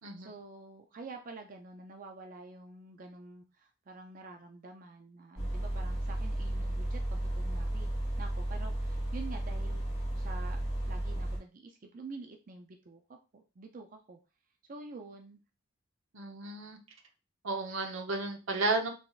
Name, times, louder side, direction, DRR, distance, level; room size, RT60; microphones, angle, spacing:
voice 1, 0.2-9.9 10.1-14.2 14.7-15.4, right 3 dB, 40° right, 4 dB, 0.4 m, -48 dB
sound 1, 5.4-11.4, right 1 dB, 20° left, 2.2 m, -33 dB
voice 2, 16.1-16.8 17.4-18.9, right 3 dB, 80° right, 2 dB, 0.8 m, -33 dB
3.8 x 3.4 x 2.4 m, 0.31 s
head